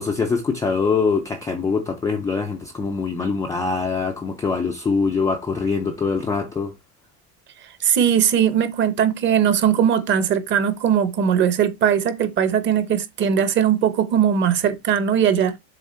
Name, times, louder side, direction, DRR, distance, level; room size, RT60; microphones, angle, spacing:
voice 1, 0.0-6.7, left 4 dB, 10° left, 0.3 m, -23 dB
voice 2, 7.8-15.6, right 8 dB, 30° right, 0.8 m, -19 dB
7.2 x 3.4 x 4.3 m
cardioid pair, 170°, 36 cm